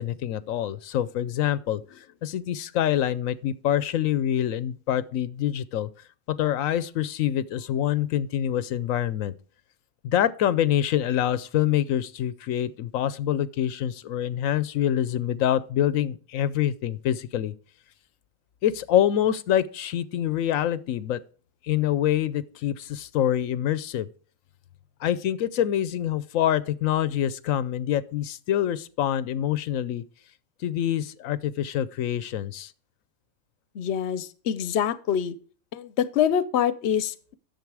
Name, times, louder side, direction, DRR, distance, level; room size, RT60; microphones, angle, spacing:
voice 1, 0.0-5.9 6.3-9.3 10.0-17.5 18.6-21.2 21.6-24.1 25.0-30.0 30.6-32.7, left 11 dB, 90° left, 1.0 m, -26 dB
voice 2, 33.7-35.3 35.7-37.3, left 9 dB, 60° left, 0.9 m, -25 dB
10.5 x 7.0 x 4.7 m
omnidirectional pair, 1.4 m